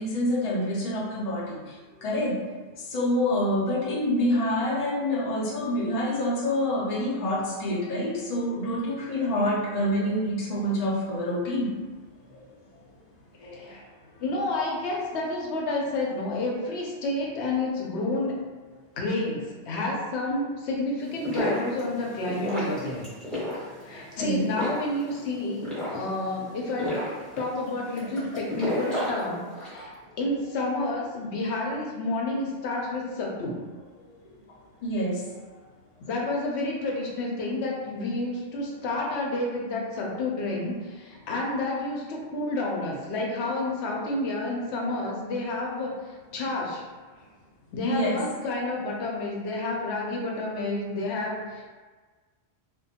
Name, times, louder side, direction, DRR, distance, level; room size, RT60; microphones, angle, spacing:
voice 1, 0.0-2.4 2.8-11.8 12.3-12.4 13.4-13.6 23.9-24.5 29.7-29.9 34.0-34.1 34.8-35.2 47.8-48.2, left 1 dB, 45° left, -4 dB, 0.6 m, -27 dB
voice 2, 13.4-13.8 14.2-18.3 18.9-23.1 23.8-27.0 27.4-33.6 36.1-46.8 47.7-51.6, left 2 dB, 85° left, -2 dB, 0.9 m, -30 dB
sound 1, 21.0-29.8, equal, ahead, 0.7 m, -33 dB
2.5 x 2.2 x 2.7 m, 1.4 s
omnidirectional pair, 1.1 m